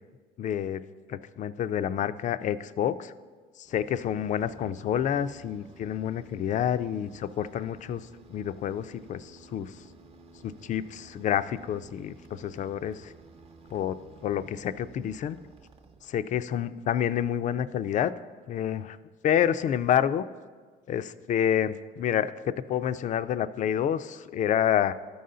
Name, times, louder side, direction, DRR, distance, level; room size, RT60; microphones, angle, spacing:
voice 1, 0.4-0.8 1.1-3.1 3.6-9.8 10.4-13.1 13.7-14.0 14.2-15.4 16.0-18.1 18.5-19.0 19.2-20.2 20.9-24.9, left 9 dB, 45° left, 13 dB, 0.4 m, -28 dB
sound 1, 3.6-16.5, right 3 dB, 35° right, 0.7 m, -53 dB
13.0 x 5.5 x 3.8 m, 1.5 s
cardioid pair, 110°, 17 cm